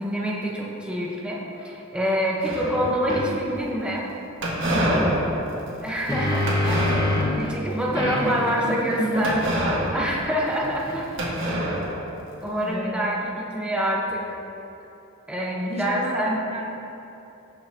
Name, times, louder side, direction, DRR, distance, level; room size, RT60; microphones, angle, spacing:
voice 1, 0.0-4.1 5.8-7.1 7.3-11.1 12.4-14.2 15.3-16.4, equal, 5° right, -4 dB, 1.1 m, -26 dB
sound 1, 2.4-3.2 4.4-7.5 7.9-8.2 9.2-10.9 11.2-12.5, equal, 65° right, 1.7 m, -27 dB
sound 2, 3.1-3.3 5.7-7.4 8.0-11.3, left 2 dB, 20° left, 1.2 m, -28 dB
voice 2, 4.7-5.3 8.0-9.6 10.0-10.1 12.6-13.0 15.7-16.8, right 1 dB, 30° right, -1 dB, 1.0 m, -30 dB
15.5 x 5.7 x 3.0 m, 3.0 s
head